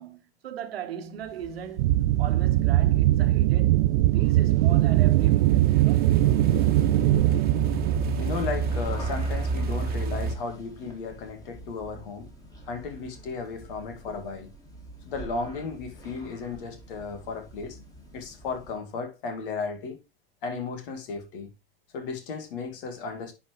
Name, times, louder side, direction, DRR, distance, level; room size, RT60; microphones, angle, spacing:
voice 1, 0.0-6.2, right 9 dB, 75° right, 1.3 m, -38 dB
sound 1, 1.1-18.9, equal, 10° left, 2.7 m, -47 dB
sound 2, 1.8-8.8, right 16 dB, 55° right, 0.5 m, -21 dB
sound 3, 4.8-10.4, right 3 dB, 30° right, 1.4 m, -30 dB
voice 2, 8.2-12.3 12.7-14.5 15.1-17.8 18.1-20.0 20.4-21.5 21.9-23.3, left 4 dB, 60° left, 2.4 m, -34 dB
10.0 x 4.5 x 3.3 m
hypercardioid pair, 95°, 31 cm